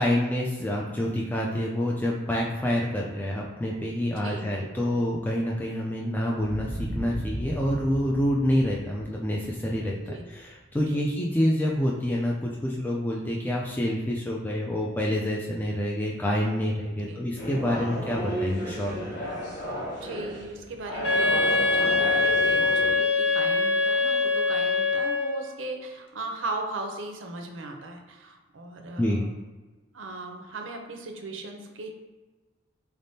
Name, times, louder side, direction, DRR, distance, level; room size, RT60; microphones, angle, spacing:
voice 1, 0.0-10.0 10.3-19.1 29.0-29.2, equal, 10° left, -3 dB, 0.3 m, -27 dB
voice 2, 4.2-4.9 10.1-10.2 10.7-11.1 17.0-17.2 20.0-29.3 29.9-31.9, right 2 dB, 80° right, 3 dB, 0.6 m, -37 dB
sound 1, 6.4-11.0, equal, 10° right, 0.7 m, -37 dB
sound 2, 17.4-22.9, equal, 60° left, 1.3 m, -33 dB
Wind instrument woodwind instrument, 21.0-25.5, left 3 dB, 80° left, 0.7 m, -23 dB
4.0 x 3.5 x 2.7 m, 1.2 s
head